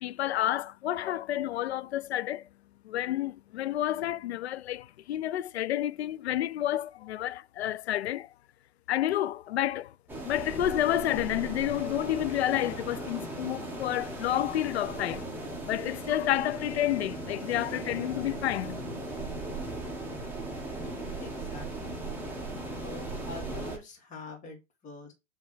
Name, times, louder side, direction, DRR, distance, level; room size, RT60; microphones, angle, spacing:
voice 1, 0.0-2.4 2.9-8.3 8.9-9.9 10.2-15.2 15.7-18.8, left 13 dB, 60° left, 0.5 m, -30 dB
sound 1, 10.1-23.8, right 2 dB, 5° right, 1.5 m, -37 dB
voice 2, 20.8-21.9 22.8-25.1, left 4 dB, 20° left, 2.1 m, -45 dB
7.2 x 3.2 x 4.7 m
hypercardioid pair, 120°, 37 cm